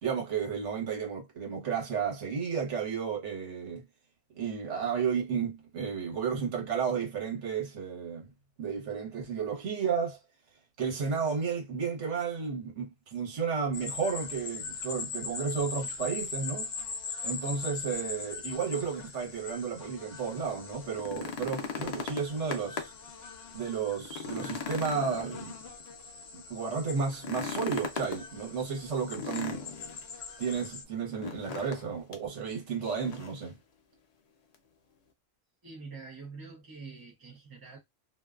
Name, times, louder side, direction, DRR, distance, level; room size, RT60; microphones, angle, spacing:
voice 1, 0.0-3.8 4.3-8.3 8.6-10.2 10.8-16.7 17.2-22.9 23.5-25.6 26.3-29.7 30.4-33.6, right 6 dB, 70° right, 1.2 m, -32 dB
sound 1, 13.7-30.8, left 5 dB, 65° left, 0.7 m, -41 dB
sound 2, 20.8-23.1 23.5-23.6 24.0-25.9 27.1-28.2 29.1-30.0 31.2-31.8 32.1-32.3 32.8-33.4 34.5-34.6, left 5 dB, 90° left, 0.3 m, -38 dB
voice 2, 35.6-37.8, right 4 dB, 25° right, 0.4 m, -45 dB
2.5 x 2.2 x 2.3 m
omnidirectional pair, 1.2 m